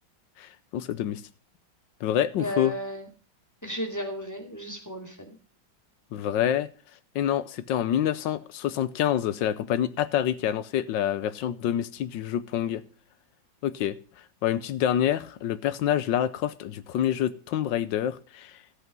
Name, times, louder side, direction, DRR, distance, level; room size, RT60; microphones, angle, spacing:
voice 1, 0.4-1.2 2.0-2.7 6.1-6.7 7.1-12.8 13.6-14.0 14.4-18.6, left 10 dB, 75° left, 1.4 m, -27 dB
voice 2, 2.4-3.1 3.6-5.4, equal, 10° left, 2.4 m, -34 dB
12.5 x 8.2 x 5.3 m
omnidirectional pair, 2.1 m